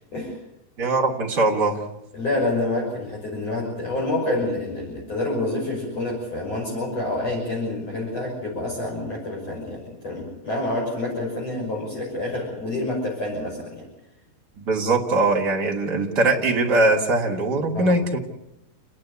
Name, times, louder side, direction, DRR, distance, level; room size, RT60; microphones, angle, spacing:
voice 1, 0.8-1.8 14.6-18.2, right 2 dB, 30° right, 1 dB, 2.6 m, -21 dB
voice 2, 2.1-13.8 17.7-18.0, left 2 dB, 40° left, -2 dB, 7.0 m, -28 dB
29.5 x 10.5 x 9.9 m, 0.85 s
omnidirectional pair, 4.6 m